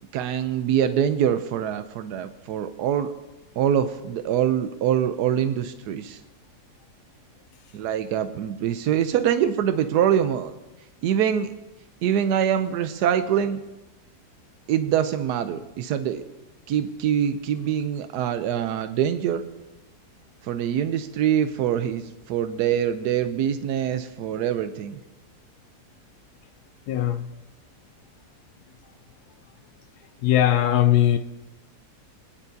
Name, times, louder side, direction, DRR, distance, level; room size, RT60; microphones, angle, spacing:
voice 1, 0.1-3.1 3.6-6.2 7.7-10.5 11.0-11.5 12.0-13.6 14.7-16.2 16.7-19.4 20.5-25.0, right 9 dB, 85° right, 9 dB, 1.2 m, -24 dB
voice 2, 26.9-27.3 30.2-31.2, left 11 dB, 80° left, 8 dB, 1.1 m, -19 dB
21.5 x 9.9 x 2.7 m, 1.0 s
omnidirectional pair, 1.7 m